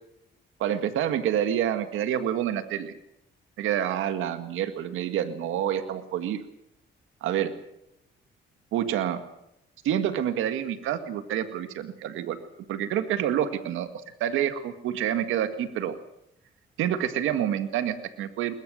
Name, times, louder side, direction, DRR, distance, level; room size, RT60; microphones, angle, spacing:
voice 1, 0.6-2.9 3.6-6.5 7.2-7.5 8.7-9.2 9.8-12.4 12.7-16.0 16.8-18.5, right 10 dB, 90° right, 9 dB, 1.9 m, -28 dB
21.0 x 21.0 x 6.5 m, 0.82 s
cardioid pair, 90°, 20 cm